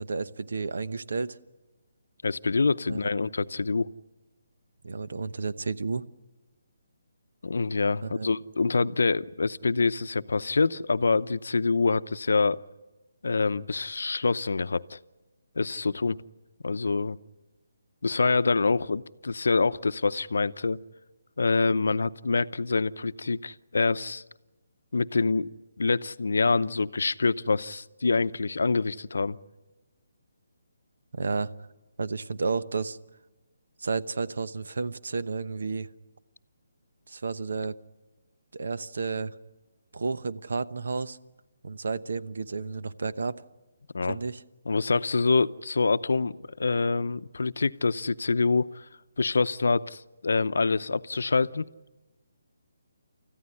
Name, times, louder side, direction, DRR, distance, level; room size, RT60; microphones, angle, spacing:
voice 1, 0.0-1.4 2.9-3.0 4.8-6.1 8.0-8.3 31.1-31.5 32.0-33.0 33.8-35.9 37.1-37.7 38.5-39.3 39.9-41.2 41.6-43.4 44.1-44.4, right 4 dB, 60° right, 13 dB, 1.0 m, -31 dB
voice 2, 2.2-3.9 7.4-12.6 13.2-15.0 15.6-16.2 16.6-17.2 18.0-20.8 21.4-24.2 24.9-25.5 25.8-29.4 43.9-44.2 44.7-48.8 49.2-51.6, left 4 dB, 75° left, 14 dB, 0.7 m, -26 dB
30.0 x 14.5 x 10.0 m, 1.1 s
hypercardioid pair, 180°, 0 cm